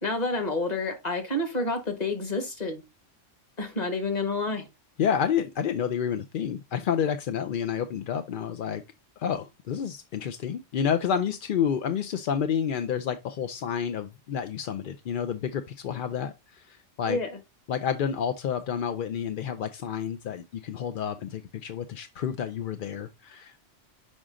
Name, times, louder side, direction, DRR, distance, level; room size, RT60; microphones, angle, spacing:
voice 1, 0.0-2.8 3.6-4.7 17.1-17.3, left 2 dB, 35° left, 1.5 m, -29 dB
voice 2, 5.0-8.8 9.2-17.2 17.7-23.6, left 8 dB, 60° left, 0.6 m, -29 dB
6.2 x 4.9 x 3.6 m
omnidirectional pair, 1.3 m